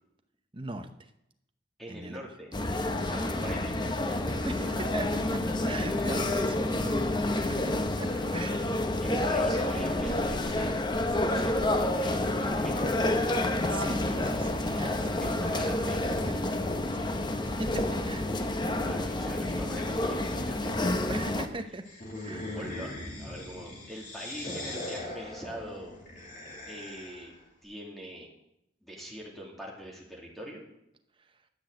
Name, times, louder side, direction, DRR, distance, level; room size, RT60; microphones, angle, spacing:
voice 1, 0.5-1.1 1.9-2.2 3.0-3.4 4.5-8.7 13.7-17.3 17.6-18.3 21.1-21.9 22.2-22.5, right 2 dB, 25° right, 6 dB, 0.8 m, -40 dB
voice 2, 1.8-2.5 3.1-5.0 9.0-11.0 11.3-12.9 15.2-16.1 18.4-20.8 22.5-25.9 26.7-27.3 27.6-28.3 28.8-30.7, equal, ahead, -3 dB, 2.6 m, -43 dB
sound 1, 2.5-21.5, left 1 dB, 25° left, 0.7 m, -29 dB
sound 2, 21.8-27.3, left 1 dB, 45° left, 2.7 m, -40 dB
12.0 x 6.3 x 7.7 m, 0.81 s
head